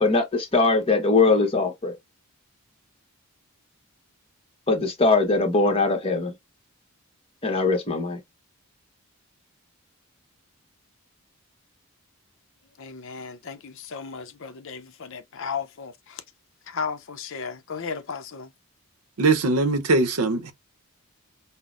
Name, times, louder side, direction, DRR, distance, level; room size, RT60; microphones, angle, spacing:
voice 1, 0.0-1.9 4.7-6.3 7.4-8.2, left 3 dB, 25° left, 1.0 m, -21 dB
voice 2, 12.8-16.2 16.7-18.5, left 5 dB, 60° left, 0.5 m, -35 dB
voice 3, 19.2-20.5, right 3 dB, 85° right, 0.7 m, -21 dB
5.7 x 2.0 x 2.4 m
head